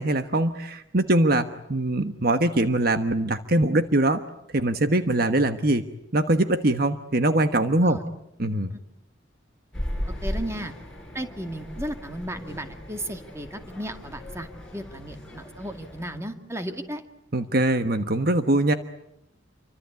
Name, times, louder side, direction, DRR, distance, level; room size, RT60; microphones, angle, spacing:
voice 1, 0.0-4.2 4.5-5.8 6.1-8.0 8.4-8.7 17.3-18.7, right 1 dB, 50° right, 9 dB, 1.3 m, -22 dB
voice 2, 7.7-8.1 8.7-8.8 10.2-10.7 11.1-17.0, right 1 dB, 15° right, 6 dB, 2.1 m, -35 dB
sound 1, 9.7-16.2, equal, 5° left, 7.0 m, -36 dB
28.5 x 24.5 x 8.3 m, 0.80 s
head